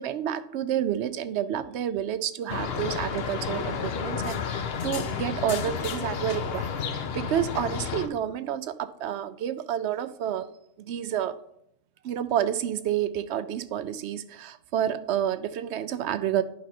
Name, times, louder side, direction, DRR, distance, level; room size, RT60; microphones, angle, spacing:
voice 1, 0.0-10.5 10.8-11.4 12.0-16.4, right 10 dB, 70° right, 13 dB, 0.8 m, -29 dB
sound 1, 2.5-8.1, left 6 dB, 55° left, 0.8 m, -31 dB
10.5 x 5.2 x 4.3 m, 0.75 s
omnidirectional pair, 1.3 m